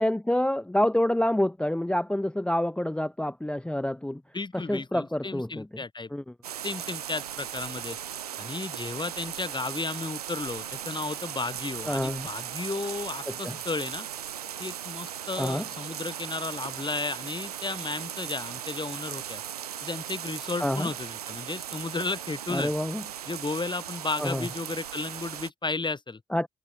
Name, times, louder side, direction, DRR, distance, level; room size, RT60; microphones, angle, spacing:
voice 1, 0.0-4.2 4.5-5.8 6.1-6.2 11.8-12.3 13.3-13.6 15.4-15.6 20.6-20.9 22.5-23.0 24.2-24.5 26.3-26.5, left 1 dB, 5° left, 0.5 m, -27 dB
voice 2, 4.3-6.1 6.6-8.0 8.4-14.1 14.6-19.4 19.8-22.7 23.2-26.2, left 3 dB, 25° left, 2.8 m, -34 dB
sound 1, 6.4-25.5, right 10 dB, 85° right, 0.8 m, -38 dB
figure-of-eight pair, 40°, 19 cm